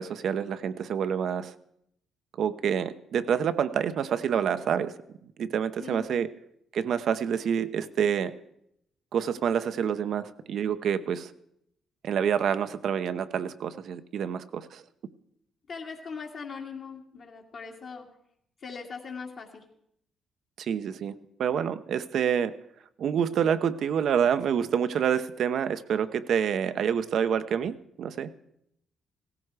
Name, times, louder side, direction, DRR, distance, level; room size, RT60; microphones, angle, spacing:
voice 1, 0.0-1.5 2.4-5.0 5.4-6.3 6.7-8.4 9.1-11.3 12.0-14.8 20.6-21.1 21.4-22.5 23.0-28.3, right 8 dB, 65° right, 12 dB, 0.8 m, -27 dB
voice 2, 5.8-6.2 15.7-18.1 18.6-19.6, left 5 dB, 60° left, -2 dB, 2.1 m, -40 dB
17.0 x 14.5 x 4.8 m, 0.74 s
cardioid pair, 90°, 0 cm